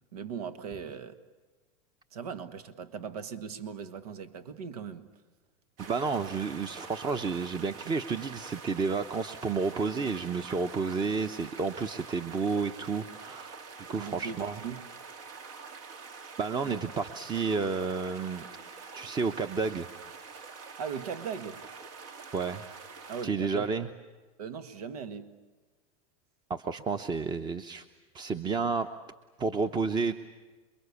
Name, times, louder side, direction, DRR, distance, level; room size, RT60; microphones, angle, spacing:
voice 1, 0.1-1.2 2.1-5.1 13.9-14.8 16.6-16.8 20.8-21.6 23.1-23.7 24.4-25.3, right 6 dB, 85° right, 11 dB, 1.7 m, -39 dB
voice 2, 5.8-13.6 13.9-14.6 16.4-18.4 18.9-19.9 22.3-22.6 23.2-23.9 26.5-27.8 28.1-28.9 29.4-30.1, right 4 dB, 20° right, 9 dB, 1.0 m, -31 dB
sound 1, 5.8-23.3, right 5 dB, 65° right, 2.7 m, -46 dB
28.0 x 23.0 x 8.4 m, 1.3 s
supercardioid pair, 125°, 19 cm